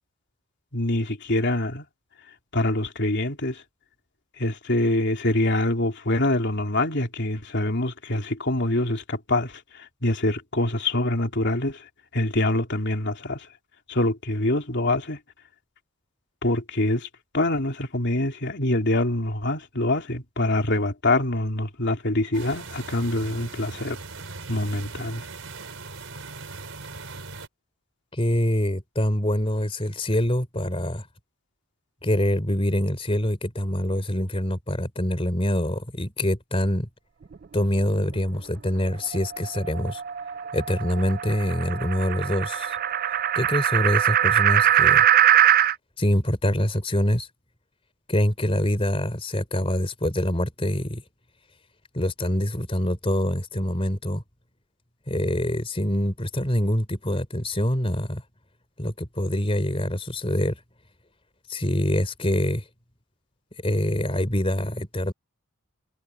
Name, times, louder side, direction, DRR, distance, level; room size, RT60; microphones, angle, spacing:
voice 1, 0.7-1.8 2.5-3.6 4.4-11.8 12.1-13.5 13.9-15.2 16.4-17.1 17.3-24.0 24.5-25.2, left 1 dB, 50° left, 3.2 m, -25 dB
sound 1, 22.3-27.5, right 3 dB, 65° right, 5.4 m, -39 dB
voice 2, 28.1-31.0 32.0-36.9 37.5-40.0 40.5-42.8 43.3-45.0 46.0-47.3 48.1-51.0 51.9-54.2 55.1-58.2 58.8-60.6 61.5-62.6 63.6-65.1, equal, 25° left, 3.6 m, -25 dB
sound 2, 39.0-45.7, right 11 dB, 40° right, 0.3 m, -22 dB
head